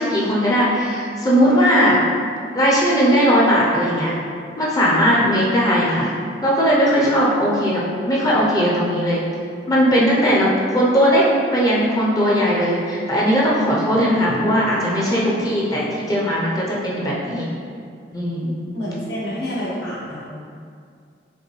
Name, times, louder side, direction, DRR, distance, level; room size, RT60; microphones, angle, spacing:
voice 1, 0.0-2.0 2.5-4.1 4.6-6.2 6.4-9.2 9.7-11.3 11.5-17.5 18.1-18.6, equal, 20° left, -5 dB, 0.5 m, -18 dB
voice 2, 18.7-20.2, equal, 80° left, -8 dB, 1.3 m, -28 dB
5.2 x 2.6 x 3.1 m, 2.3 s
head